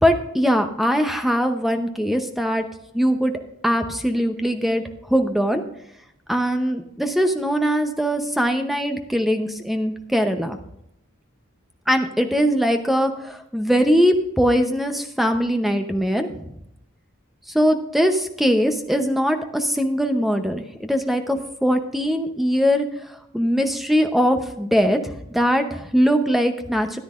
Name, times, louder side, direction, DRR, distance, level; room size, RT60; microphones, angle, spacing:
voice 1, 0.0-2.7 2.9-3.3 3.6-4.8 5.1-5.6 6.3-10.6 11.9-16.5 17.5-22.9 23.3-27.0, equal, ahead, 6 dB, 0.7 m, -21 dB
14.0 x 10.5 x 2.5 m, 0.81 s
head